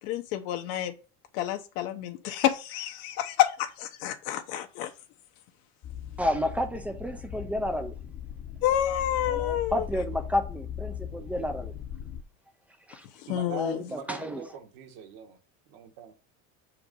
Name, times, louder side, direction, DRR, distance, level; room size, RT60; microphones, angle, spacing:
voice 1, 0.0-0.9 1.3-4.9 8.6-9.9 13.2-13.9, left 12 dB, 75° left, 1.0 m, -29 dB
sound 1, 5.8-12.2, left 9 dB, 30° left, 0.7 m, -39 dB
voice 2, 6.2-7.9 9.3-11.7 12.9-13.0 13.5-14.4, left 1 dB, 5° right, 0.3 m, -31 dB
voice 3, 13.3-15.4 15.7-16.1, right 8 dB, 60° right, 1.6 m, -42 dB
6.6 x 4.7 x 5.2 m
cardioid pair, 170°, 41 cm